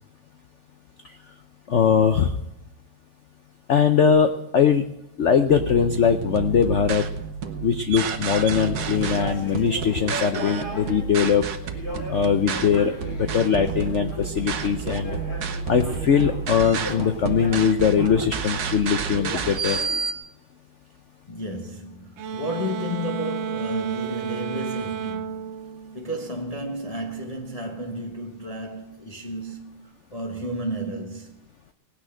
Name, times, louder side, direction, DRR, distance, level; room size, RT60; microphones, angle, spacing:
voice 1, 1.7-2.4 3.7-4.8 5.2-7.1 7.6-11.4 12.1-15.2 15.7-19.8, left 7 dB, 80° left, 0.6 m, -21 dB
sound 1, 5.5-20.1, right 6 dB, 55° right, 1.4 m, -30 dB
sound 2, 8.8-20.0, left 2 dB, 50° left, 2.7 m, -37 dB
voice 2, 21.3-25.5 25.9-31.4, equal, 25° left, 1.0 m, -32 dB
sound 3, 22.2-26.6, right 7 dB, 85° right, 0.6 m, -32 dB
18.0 x 6.4 x 8.7 m
omnidirectional pair, 2.1 m